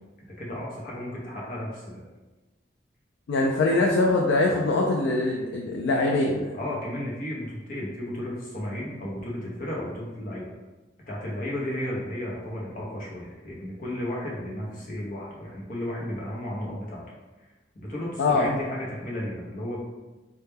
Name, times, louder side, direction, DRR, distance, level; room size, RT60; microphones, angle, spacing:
voice 1, 0.4-2.0 6.5-10.5 11.1-17.0 17.4-17.5 17.8-19.8, left 1 dB, 50° left, -5 dB, 0.6 m, -33 dB
voice 2, 3.3-6.5 18.2-18.5, left 2 dB, 85° left, 0 dB, 0.3 m, -23 dB
2.2 x 2.1 x 3.2 m, 1.2 s
head